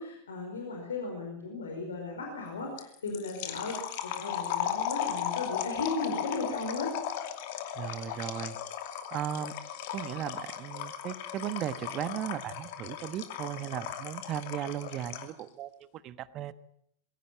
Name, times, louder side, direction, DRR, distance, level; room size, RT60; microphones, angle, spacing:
voice 1, 0.0-6.9, left 3 dB, 70° left, 2 dB, 4.9 m, -36 dB
sound 1, 2.8-15.4, left 9 dB, 50° left, 2.5 m, -36 dB
voice 2, 7.7-8.6 9.1-9.5 9.9-16.5, right 11 dB, 35° right, 15 dB, 1.2 m, -36 dB
22.0 x 17.0 x 8.6 m, 0.72 s
figure-of-eight pair, 90°, 0 cm